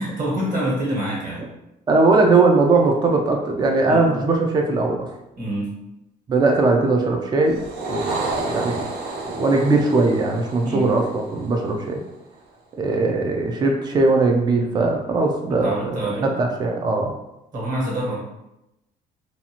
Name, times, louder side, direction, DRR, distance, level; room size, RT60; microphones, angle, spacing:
voice 1, 0.0-1.5 3.9-4.1 5.4-5.7 10.6-10.9 15.5-16.3 17.5-18.2, right 1 dB, 50° right, -4 dB, 1.3 m, -26 dB
voice 2, 1.9-5.1 6.3-7.6 7.9-8.9 9.2-12.0 12.8-15.7 16.4-17.1, right 3 dB, 25° right, 2 dB, 0.4 m, -19 dB
sound 1, 7.4-12.0, right 3 dB, 75° right, 0.6 m, -31 dB
2.6 x 2.3 x 2.9 m, 0.89 s
cardioid pair, 110°, 17 cm